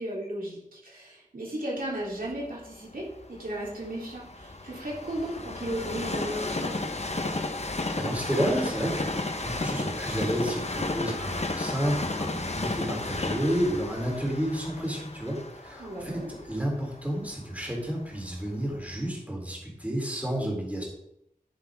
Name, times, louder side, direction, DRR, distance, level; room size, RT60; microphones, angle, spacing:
voice 1, 0.0-6.8 15.8-16.3, right 1 dB, 80° right, -5 dB, 3.6 m, -35 dB
Train, 2.3-18.3 18.8-18.9, left 2 dB, 50° left, 1.1 m, -33 dB
voice 2, 8.0-20.8, equal, 10° right, -2 dB, 3.8 m, -31 dB
10.0 x 10.0 x 3.7 m, 0.80 s
wide cardioid pair, 55°, 15 cm